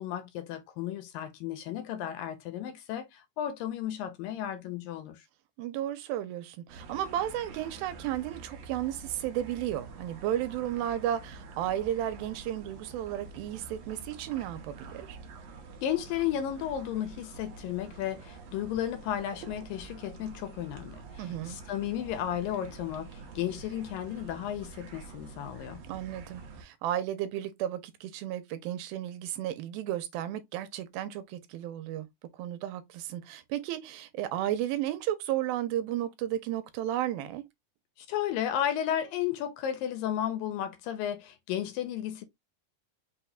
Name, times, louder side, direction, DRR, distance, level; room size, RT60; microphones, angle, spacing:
voice 1, 0.0-5.2 15.8-25.8 38.0-42.2, left 10 dB, 80° left, 2.2 m, -33 dB
voice 2, 5.6-15.2 21.2-21.6 25.9-32.1 32.4-37.4, right 12 dB, 85° right, 2.4 m, -33 dB
sound 1, 6.7-26.6, right 4 dB, 70° right, 1.6 m, -47 dB
5.9 x 2.2 x 3.9 m
omnidirectional pair, 4.3 m